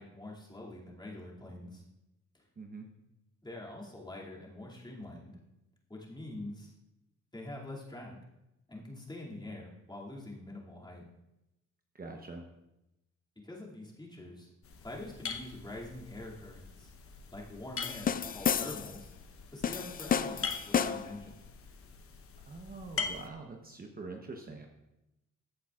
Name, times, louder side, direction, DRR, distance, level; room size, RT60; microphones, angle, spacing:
voice 1, 0.0-1.8 2.3-2.4 3.4-5.4 5.9-6.7 7.3-8.2 8.7-11.1 13.4-14.5 14.8-16.9 17.3-19.1 19.5-21.4, left 1 dB, 15° left, -4 dB, 2.6 m, -45 dB
voice 2, 2.6-2.9 11.9-12.4 22.5-24.7, right 3 dB, 30° right, 2 dB, 1.0 m, -44 dB
sound 1, 14.6-23.3, left 5 dB, 45° left, 1.0 m, -43 dB
sound 2, 17.8-19.0 19.6-21.2, left 7 dB, 30° left, 0.4 m, -31 dB
14.5 x 8.1 x 2.5 m, 0.91 s
cardioid pair, 90°, 30 cm